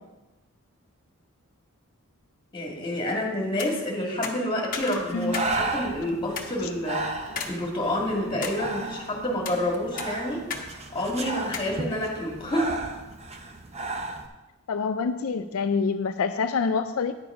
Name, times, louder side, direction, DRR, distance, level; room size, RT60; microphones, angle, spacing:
voice 1, 2.5-10.5 10.9-12.8, left 1 dB, 20° left, -1 dB, 1.9 m, -28 dB
sound 1, 3.5-3.7 4.2-5.5 5.9-6.0 6.4-6.5 7.4-7.6 8.0-8.6 9.2-9.6 10.0-10.7 10.9-11.0 11.5-11.7, left 5 dB, 40° left, 1.0 m, -34 dB
Breathing, 4.8-14.3, right 2 dB, 30° right, 0.7 m, -34 dB
voice 2, 5.1-5.5 14.7-17.1, left 5 dB, 70° left, 8 dB, 0.4 m, -26 dB
9.7 x 7.0 x 4.9 m, 1.1 s
head